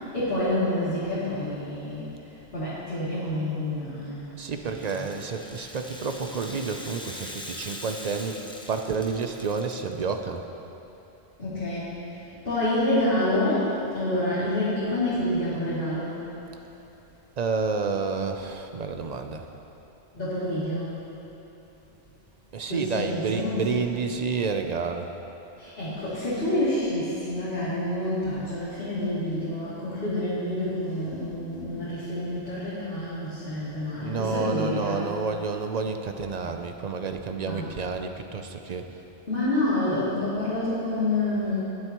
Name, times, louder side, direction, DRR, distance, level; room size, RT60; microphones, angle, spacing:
voice 1, 0.1-2.0 2.5-4.3 4.6-5.1 11.4-11.9 12.4-16.2 20.1-20.9 22.7-23.8 25.6-35.2 36.4-36.5 37.4-37.6 39.3-41.6, left 1 dB, 55° left, -13 dB, 3.0 m, -28 dB
voice 2, 4.3-10.4 17.4-19.5 22.5-25.1 34.0-38.9, right 4 dB, 50° right, 6 dB, 0.6 m, -30 dB
Rattle (instrument), 4.6-10.1, equal, 5° left, 0.7 m, -42 dB
21.0 x 7.9 x 3.0 m, 3.0 s
omnidirectional pair, 1.2 m